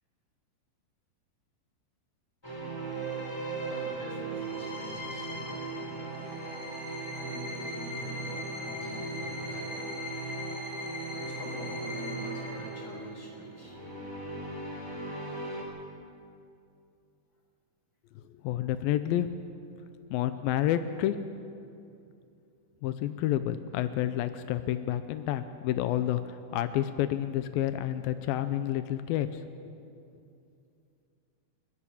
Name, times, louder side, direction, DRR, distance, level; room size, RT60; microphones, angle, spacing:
sound 1, 2.4-15.6, right 2 dB, 5° left, 3.8 m, -37 dB
voice 1, 3.7-6.0 7.2-9.9 11.1-13.7, equal, 25° left, -3 dB, 6.3 m, -45 dB
voice 2, 18.3-19.3 20.1-21.2 22.8-29.4, left 12 dB, 90° left, 10 dB, 2.5 m, -29 dB
29.5 x 12.5 x 8.6 m, 2.5 s
omnidirectional pair, 4.1 m